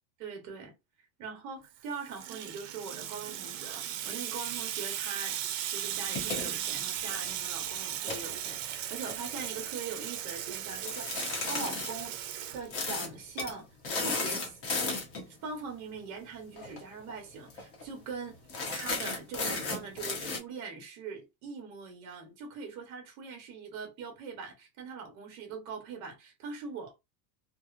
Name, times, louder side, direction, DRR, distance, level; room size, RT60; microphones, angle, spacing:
voice 1, 0.2-0.7 1.2-5.4 5.7-11.1 11.4-12.2 12.5-14.6 15.3-18.4 18.7-27.0, right 5 dB, 35° right, 0.9 m, -42 dB
Water tap faucet / Sink (filling or washing), 1.7-13.2, right 11 dB, 65° right, 0.5 m, -37 dB
sound 1, 5.9-7.4 7.9-9.5 10.8-11.9 12.7-13.1 13.4-13.5 13.8-15.3 16.6-16.8 17.1-17.2 17.5-17.8 18.5-20.4, left 3 dB, 35° left, 0.8 m, -35 dB
2.8 x 2.0 x 2.3 m
supercardioid pair, 175°, 42 cm